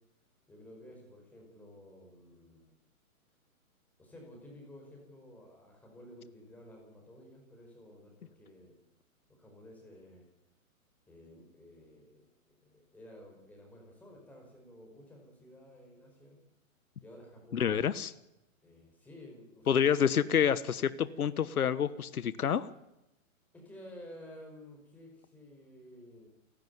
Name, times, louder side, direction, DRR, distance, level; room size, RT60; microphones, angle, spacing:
voice 1, 0.5-2.7 4.0-8.8 9.3-10.3 11.1-16.4 17.0-17.8 18.6-20.0 23.5-26.3, left 1 dB, 5° left, 0 dB, 5.0 m, -53 dB
voice 2, 17.5-18.1 19.7-22.7, left 8 dB, 85° left, 16 dB, 1.3 m, -28 dB
29.0 x 11.5 x 9.6 m, 0.91 s
hypercardioid pair, 165°, 43 cm